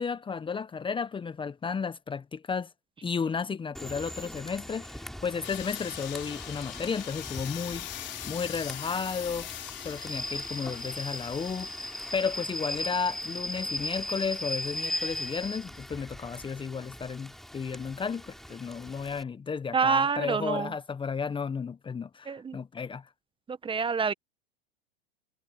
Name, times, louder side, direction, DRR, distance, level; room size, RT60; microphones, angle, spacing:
voice 1, 0.0-2.7 3.0-7.9 8.3-9.5 9.8-11.7 12.1-23.1, left 5 dB, 15° left, 1.4 m, -33 dB
Rain / Train, 3.7-19.2, equal, ahead, 4.4 m, -38 dB
sound 1, 5.4-14.0, left 13 dB, 35° left, 5.0 m, -43 dB
voice 2, 19.7-20.7 22.3-22.6 23.5-24.1, right 5 dB, 15° right, 1.6 m, -27 dB
hypercardioid pair, 95°, 30 cm